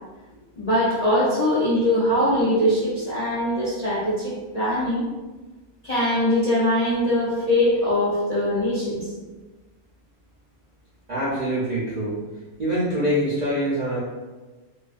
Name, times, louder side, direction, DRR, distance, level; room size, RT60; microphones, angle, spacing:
voice 1, 0.6-5.1 5.8-9.1, left 1 dB, 55° left, -10 dB, 0.4 m, -22 dB
voice 2, 11.1-12.2 12.6-14.0, equal, 60° right, -9 dB, 0.4 m, -24 dB
2.4 x 2.3 x 2.4 m, 1.2 s
omnidirectional pair, 1.4 m